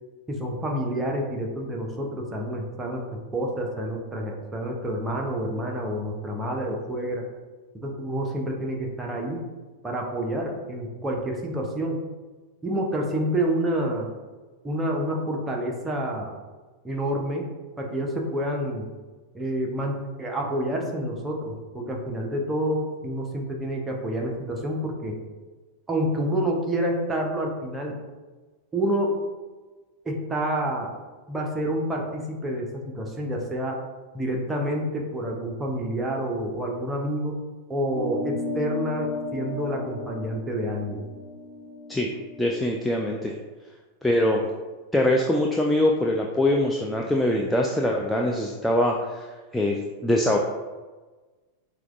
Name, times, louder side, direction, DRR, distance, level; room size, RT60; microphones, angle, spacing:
voice 1, 0.3-7.2 7.7-9.5 9.8-12.0 12.6-14.1 14.6-16.3 16.8-17.5 17.8-18.9 19.3-25.2 25.9-28.0 28.7-29.1 30.1-30.9 31.3-33.8 34.1-37.4 37.7-41.1, right 1 dB, 15° right, 0 dB, 0.7 m, -28 dB
sound 1, 37.9-42.7, left 2 dB, 30° left, 0.7 m, -34 dB
voice 2, 42.4-43.3 44.0-44.4 44.9-49.3 49.5-50.4, left 1 dB, 5° left, -1 dB, 0.3 m, -23 dB
5.7 x 2.2 x 2.5 m, 1.3 s
figure-of-eight pair, 90°, 0 cm